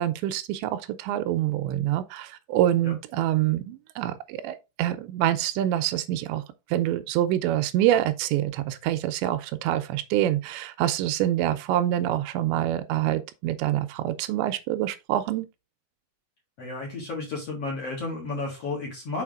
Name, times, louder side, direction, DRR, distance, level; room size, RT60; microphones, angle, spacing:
voice 1, 0.0-6.4 6.7-15.5, right 13 dB, 85° right, 3.0 m, -26 dB
voice 2, 16.6-19.2, left 3 dB, 45° left, 2.3 m, -32 dB
6.4 x 5.0 x 3.6 m
omnidirectional pair, 5.0 m